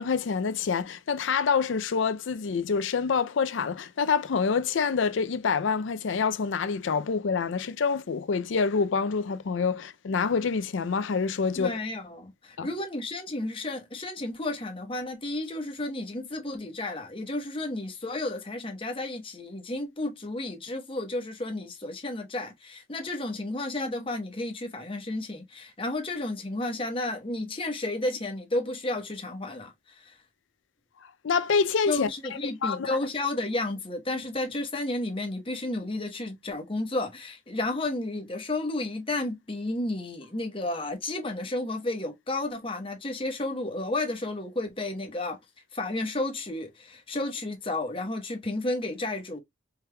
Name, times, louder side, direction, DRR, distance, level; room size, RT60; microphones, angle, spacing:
voice 1, 0.0-11.8 12.6-12.7 31.2-32.1 32.6-33.0, left 5 dB, 75° left, 0.4 m, -26 dB
voice 2, 11.6-30.2 31.9-45.4 45.7-49.4, left 2 dB, 25° left, 1.0 m, -32 dB
4.5 x 3.3 x 2.2 m
head